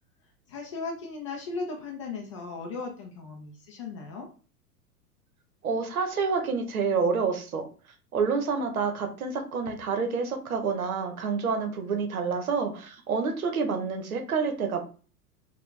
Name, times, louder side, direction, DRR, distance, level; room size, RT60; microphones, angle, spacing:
voice 1, 0.5-4.3, left 4 dB, 25° left, 1 dB, 0.3 m, -37 dB
voice 2, 5.6-7.6 8.1-14.8, right 5 dB, 65° right, 5 dB, 0.9 m, -28 dB
4.2 x 2.3 x 3.2 m, 0.38 s
figure-of-eight pair, 95°, 46 cm